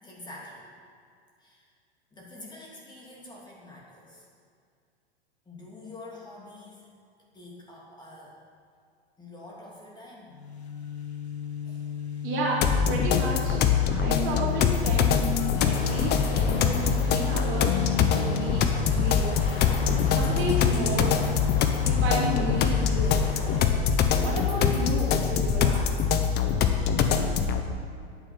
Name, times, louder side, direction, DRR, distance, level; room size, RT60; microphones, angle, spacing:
voice 1, 0.0-0.7 1.4-1.7 2.1-4.2 5.4-6.9 7.3-8.4 9.2-10.3 10.7-11.0 11.6-12.2, left 2 dB, 15° left, -4 dB, 3.0 m, -47 dB
sound 1, 10.3-24.9, left 6 dB, 85° left, 1.3 m, -35 dB
voice 2, 12.2-15.1 15.6-18.6 18.9-19.4 20.1-21.2 21.8-23.3 24.2-26.1, right 1 dB, 40° right, -3 dB, 3.3 m, -32 dB
sound 2, 12.6-27.6, left 7 dB, 30° left, 1.1 m, -24 dB
sound 3, 15.5-23.6, left 3 dB, 55° left, 2.6 m, -40 dB
10.5 x 9.3 x 7.3 m, 2.2 s
hypercardioid pair, 105°, 32 cm